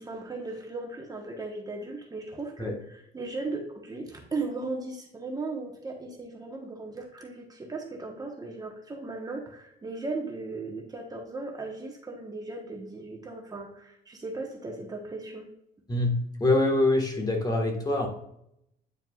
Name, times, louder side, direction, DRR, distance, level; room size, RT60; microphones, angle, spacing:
voice 1, 0.0-15.5, right 3 dB, 20° right, 1 dB, 1.1 m, -37 dB
voice 2, 15.9-18.1, left 2 dB, 20° left, 2 dB, 1.4 m, -25 dB
9.2 x 4.5 x 2.3 m, 0.77 s
cardioid pair, 110°, 17 cm